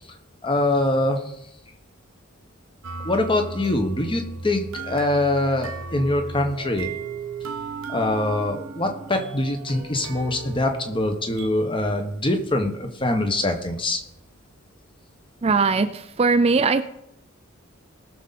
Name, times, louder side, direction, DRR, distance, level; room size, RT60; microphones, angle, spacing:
voice 1, 0.4-1.2 3.0-6.9 7.9-14.0, left 2 dB, 25° left, 5 dB, 1.3 m, -24 dB
sound 1, 2.8-11.5, right 4 dB, 85° right, 1.2 m, -36 dB
voice 2, 15.4-16.8, right 4 dB, 30° right, 10 dB, 0.4 m, -20 dB
19.5 x 6.8 x 4.2 m, 0.82 s
head